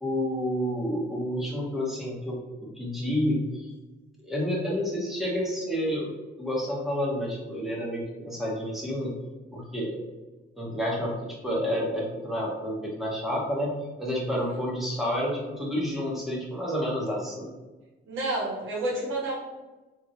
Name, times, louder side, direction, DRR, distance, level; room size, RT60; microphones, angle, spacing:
voice 1, 0.0-3.7 4.2-6.1 6.4-9.1 9.5-10.0 10.6-13.7 14.0-17.5, equal, ahead, -5 dB, 1.3 m, -29 dB
voice 2, 14.3-14.6 18.1-19.3, right 2 dB, 80° right, -4 dB, 1.4 m, -30 dB
3.6 x 3.1 x 2.7 m, 1.2 s
cardioid pair, 90°, 20 cm